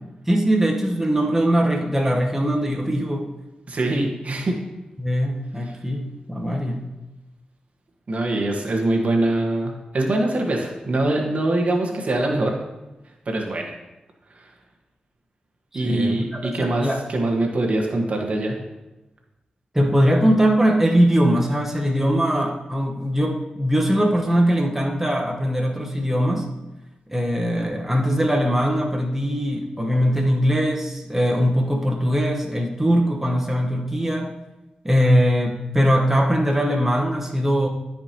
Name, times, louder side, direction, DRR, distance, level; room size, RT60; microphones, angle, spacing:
voice 1, 0.3-3.3 5.0-6.9 15.7-16.2 16.6-17.0 19.7-26.5 27.1-34.3 34.8-37.7, equal, 10° right, 0 dB, 1.3 m, -21 dB
voice 2, 3.7-4.6 8.1-12.5 13.3-13.7 14.3-14.5 15.7-18.6, right 2 dB, 55° right, 1 dB, 1.5 m, -23 dB
13.0 x 5.2 x 3.0 m, 1.0 s
cardioid pair, 55°, 3 cm